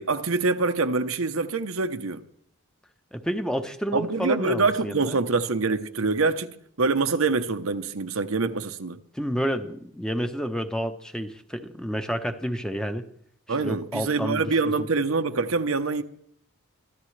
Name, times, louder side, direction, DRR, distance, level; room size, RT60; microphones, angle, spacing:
voice 1, 0.0-2.2 3.9-6.5 6.8-9.0 13.5-16.0, right 3 dB, 80° right, 0.9 m, -25 dB
voice 2, 3.1-5.2 9.1-13.1 13.6-14.9, equal, 5° left, 0.9 m, -30 dB
23.5 x 14.5 x 3.3 m
head